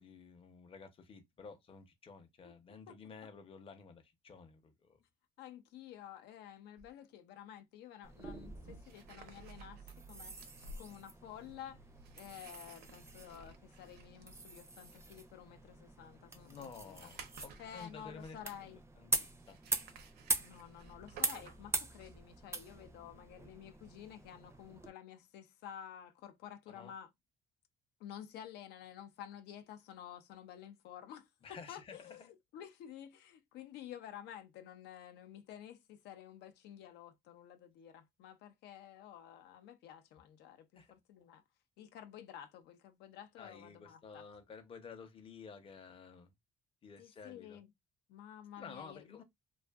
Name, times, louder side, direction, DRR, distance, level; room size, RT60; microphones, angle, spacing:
voice 1, 0.0-5.0 16.4-19.6 26.7-26.9 31.4-32.3 40.7-40.9 43.4-46.3 46.8-47.6 48.6-49.2, left 5 dB, 35° left, 0.6 m, -52 dB
voice 2, 5.4-9.8 10.1-10.3 10.8-11.8 12.2-17.0 17.6-18.8 20.4-27.1 28.0-31.3 31.7-32.2 32.5-41.4 41.8-44.2 47.0-47.7 48.1-49.2, left 10 dB, 80° left, 0.5 m, -51 dB
sound 1, 6.8-6.9 8.3-18.6 19.4-22.4, right 4 dB, 70° right, 0.6 m, -56 dB
sound 2, 8.0-24.9, right 3 dB, 15° right, 0.4 m, -43 dB
2.5 x 2.4 x 2.2 m
cardioid pair, 110°, 17 cm